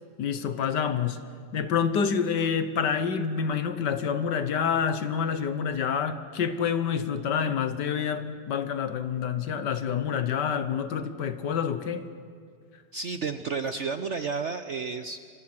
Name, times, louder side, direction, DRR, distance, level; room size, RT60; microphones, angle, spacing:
voice 1, 0.2-1.2 1.5-12.0, left 7 dB, 70° left, 11 dB, 1.7 m, -27 dB
voice 2, 12.9-15.2, right 5 dB, 55° right, 9 dB, 0.8 m, -31 dB
29.0 x 24.5 x 6.1 m, 2.1 s
omnidirectional pair, 2.0 m